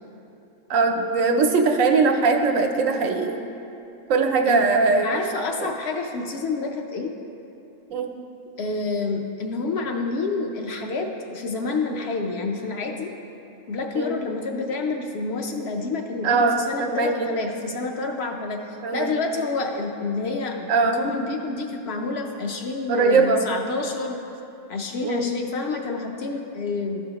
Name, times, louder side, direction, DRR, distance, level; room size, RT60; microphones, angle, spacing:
voice 1, 0.7-3.4 4.1-5.1 5.6-5.7 7.9-8.1 13.9-14.2 16.2-17.3 18.8-19.1 20.7-21.1 22.9-23.4 25.0-25.3, right 4 dB, 85° right, 4 dB, 1.1 m, -21 dB
voice 2, 5.0-7.1 8.6-13.1 13.7-18.6 18.9-20.7 20.9-24.2 24.7-27.0, left 3 dB, 60° left, 2 dB, 0.8 m, -28 dB
13.0 x 5.5 x 2.9 m, 2.8 s
omnidirectional pair, 1.3 m